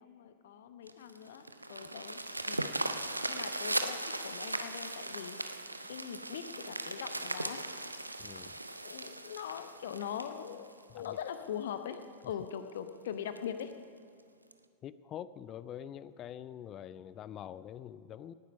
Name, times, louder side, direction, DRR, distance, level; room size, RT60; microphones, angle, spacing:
voice 1, 0.0-2.2 2.5-2.7 3.3-5.4 5.9-7.6 8.8-12.0 12.2-13.7, left 9 dB, 60° left, 9 dB, 0.9 m, -41 dB
sound 1, 0.9-11.3 11.9-12.0 12.5-12.6 12.9-13.0 13.4-13.6 14.5-14.6, right 2 dB, 85° right, 0.6 m, -38 dB
voice 2, 8.2-8.6 10.9-11.2 12.2-12.3 14.8-18.3, left 10 dB, 30° left, 16 dB, 0.4 m, -45 dB
18.5 x 9.4 x 5.3 m, 2.2 s
figure-of-eight pair, 90°, 0 cm